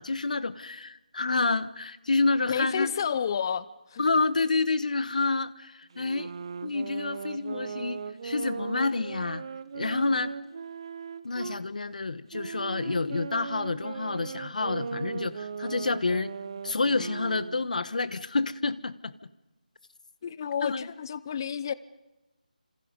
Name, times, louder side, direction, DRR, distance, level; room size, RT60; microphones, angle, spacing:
voice 1, 0.0-2.9 4.0-6.3 6.6-9.4 9.7-10.3 11.2-16.3 16.6-19.3 20.6-20.9, left 3 dB, 60° left, 1.2 m, -28 dB
voice 2, 2.5-4.0 20.2-21.7, left 7 dB, 30° left, 0.8 m, -30 dB
sound 1, 5.9-11.6 12.3-17.7, right 5 dB, 35° right, 1.0 m, -38 dB
28.5 x 27.0 x 5.3 m
figure-of-eight pair, 165°, 5 cm